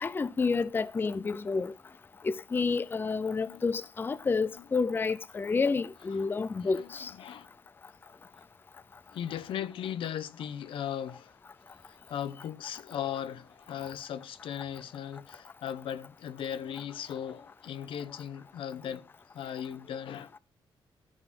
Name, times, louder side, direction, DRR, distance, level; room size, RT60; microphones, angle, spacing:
voice 1, 0.0-1.7 2.2-7.1, left 4 dB, 25° left, 0.5 m, -29 dB
voice 2, 6.6-7.5 9.1-11.4 11.9-19.1 19.3-20.4, left 9 dB, 80° left, 0.8 m, -38 dB
13.5 x 5.0 x 5.9 m
cardioid pair, 130°, 9 cm